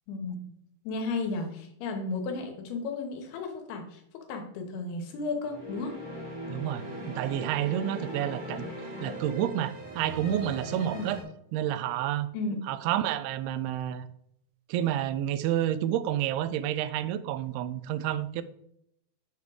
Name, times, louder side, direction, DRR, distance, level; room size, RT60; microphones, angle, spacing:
voice 1, 0.1-0.5 0.8-4.0 4.3-5.9 10.9-11.1 12.3-12.6, left 3 dB, 80° left, 4 dB, 3.1 m, -34 dB
sound 1, 5.4-11.2, equal, 35° right, 0.7 m, -39 dB
voice 2, 6.5-8.7 9.0-11.2 11.5-12.3 12.7-14.1 14.7-18.4, right 11 dB, 85° right, 14 dB, 2.5 m, -29 dB
7.4 x 3.6 x 6.2 m, 0.74 s
omnidirectional pair, 4.5 m